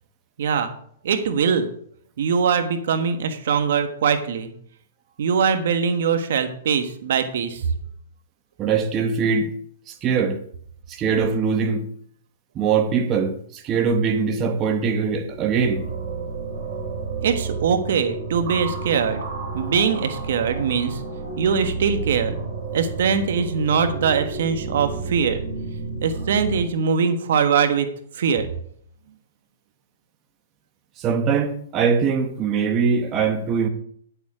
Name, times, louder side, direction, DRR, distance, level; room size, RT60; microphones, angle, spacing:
voice 1, 0.4-0.7 1.0-1.7 2.2-4.5 5.2-7.6 17.2-19.2 19.5-21.0 21.4-22.4 22.7-25.4 26.0-27.9 28.1-28.5, right 6 dB, 65° right, 1.3 m, -22 dB
voice 2, 8.6-9.5 9.9-10.4 10.9-11.8 12.5-15.8 31.0-33.7, right 6 dB, 25° right, 1.3 m, -22 dB
sound 1, 15.2-26.6, right 4 dB, 50° right, 4.8 m, -31 dB
10.5 x 7.0 x 5.0 m
hypercardioid pair, 140°, 0 cm